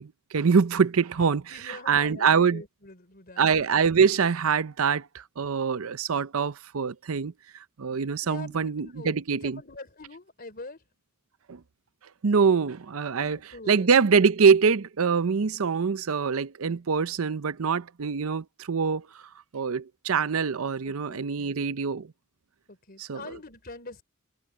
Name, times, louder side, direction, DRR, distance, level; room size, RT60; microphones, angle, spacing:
voice 1, 0.0-2.6 3.4-7.3 7.8-9.6 11.5-11.6 12.2-13.4 13.7-19.2 19.5-22.1 23.0-23.4, right 6 dB, 80° right, 0.6 m, -24 dB
voice 2, 1.5-3.4 8.2-10.8 13.1-13.9 20.8-21.5 22.7-24.0, left 3 dB, 45° left, 3.8 m, -44 dB
head